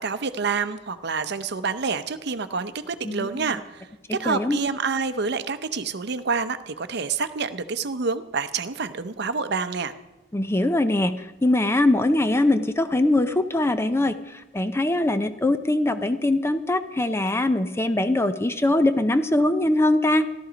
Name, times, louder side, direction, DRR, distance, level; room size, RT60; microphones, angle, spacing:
voice 1, 0.0-9.9, right 5 dB, 60° right, 11 dB, 0.7 m, -28 dB
voice 2, 3.0-3.5 4.3-4.6 10.3-11.1 11.4-14.2 14.5-20.3, left 1 dB, 15° left, 10 dB, 0.5 m, -22 dB
14.0 x 12.5 x 5.1 m, 1.0 s
head